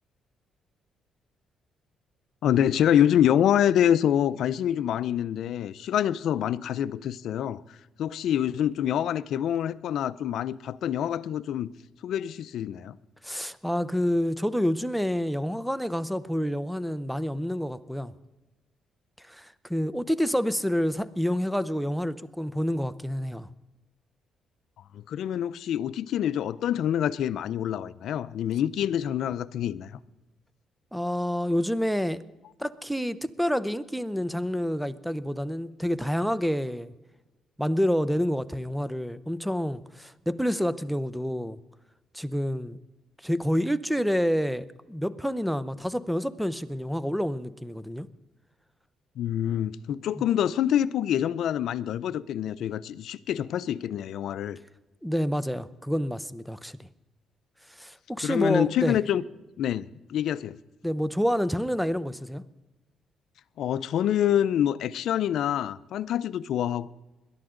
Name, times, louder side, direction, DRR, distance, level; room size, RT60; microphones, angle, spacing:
voice 1, 2.4-7.6 8.0-11.7 12.0-13.0 24.9-30.0 49.2-54.6 58.2-59.2 59.6-60.5 63.6-66.9, left 10 dB, 75° left, 0.5 m, -26 dB
voice 2, 13.2-18.1 19.3-23.5 30.9-32.2 32.6-36.9 37.6-41.6 42.1-42.8 43.2-48.1 55.0-56.9 57.8-59.0 60.8-62.4, equal, ahead, 0.7 m, -28 dB
21.0 x 11.5 x 3.8 m
cardioid pair, 90°, 0 cm